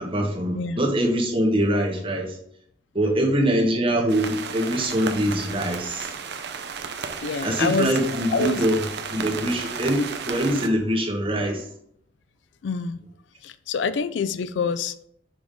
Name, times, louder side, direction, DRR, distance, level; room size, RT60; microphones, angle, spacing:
voice 1, 0.0-2.4 2.9-6.1 7.4-8.8 9.1-11.6, right 1 dB, 30° right, -2 dB, 1.6 m, -23 dB
voice 2, 0.5-0.9 7.2-8.0 8.3-8.6 12.6-13.0 13.4-15.1, left 5 dB, 75° left, 13 dB, 0.3 m, -26 dB
sound 1, 4.1-10.7, right 6 dB, 65° right, 0.6 m, -33 dB
6.1 x 3.6 x 4.9 m, 0.67 s
head